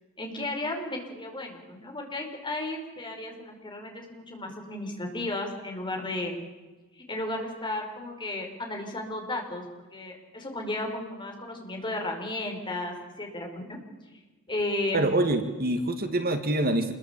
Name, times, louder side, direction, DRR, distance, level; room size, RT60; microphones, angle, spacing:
voice 1, 0.2-6.4 7.0-9.6 9.9-13.8 14.5-15.0, left 2 dB, 20° left, 2 dB, 5.3 m, -34 dB
voice 2, 14.9-16.9, right 1 dB, 45° right, 7 dB, 2.0 m, -25 dB
27.0 x 21.5 x 8.4 m, 1.2 s
head